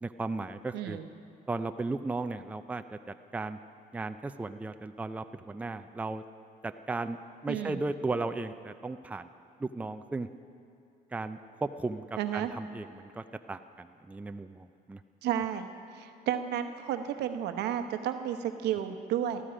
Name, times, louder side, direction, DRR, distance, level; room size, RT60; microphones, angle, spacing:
voice 1, 0.0-1.0 1.5-3.0 3.3-3.6 3.9-6.2 6.6-7.2 7.4-9.3 9.6-10.3 11.1-12.1 12.3-15.0, right 3 dB, 10° right, 9 dB, 0.4 m, -35 dB
voice 2, 0.7-1.1 7.5-7.8 12.2-12.5 15.2-15.7 15.9-19.4, right 10 dB, 80° right, 8 dB, 1.0 m, -32 dB
17.5 x 13.0 x 5.1 m, 2.7 s
cardioid pair, 110°, 17 cm